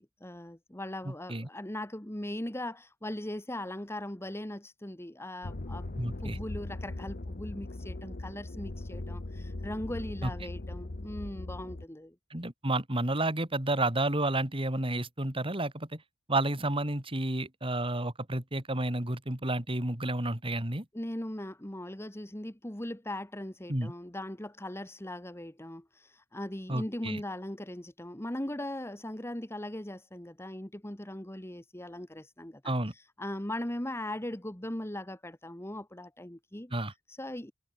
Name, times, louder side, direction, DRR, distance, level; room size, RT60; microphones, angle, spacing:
voice 1, 0.0-12.2 20.9-32.7 33.2-36.7 37.1-37.5, left 1 dB, 15° left, 1.8 m, -39 dB
voice 2, 1.0-1.5 6.0-6.4 10.2-10.3 12.3-16.0 16.3-20.8 23.7-23.9 26.7-27.2 32.6-32.9 36.7-36.9, right 2 dB, 25° right, 3.1 m, -31 dB
sound 1, 5.4-11.9, left 2 dB, 50° left, 1.0 m, -39 dB
head